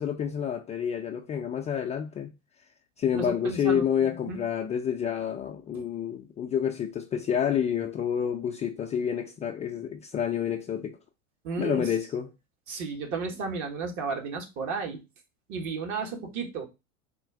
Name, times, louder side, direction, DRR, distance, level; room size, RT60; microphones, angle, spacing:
voice 1, 0.0-2.3 3.0-11.0 11.6-12.3, left 8 dB, 20° left, 0.3 m, -29 dB
voice 2, 3.1-3.9 4.3-4.4 5.7-5.9 11.4-11.9 12.7-15.0 15.5-16.6, right 4 dB, 45° right, 1.5 m, -33 dB
4.2 x 2.5 x 4.7 m
hypercardioid pair, 90°, 40 cm